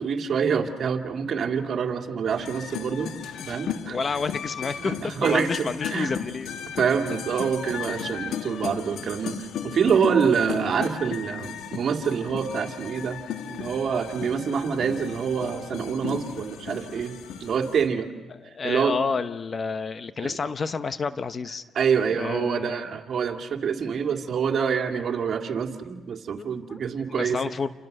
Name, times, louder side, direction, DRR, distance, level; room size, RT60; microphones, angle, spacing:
voice 1, 0.0-3.1 3.5-4.0 4.8-6.1 6.8-13.2 13.5-18.1 18.6-19.0 20.2-20.3 21.7-27.4, right 6 dB, 55° right, 4 dB, 2.4 m, -26 dB
sound 1, 2.3-17.9, left 8 dB, 80° left, 1.6 m, -36 dB
voice 2, 3.5-6.5 18.3-21.6 22.1-23.0 26.4-26.8 27.1-27.7, left 5 dB, 40° left, 11 dB, 1.0 m, -30 dB
29.5 x 27.0 x 6.7 m, 1.2 s
cardioid pair, 90°, 0 cm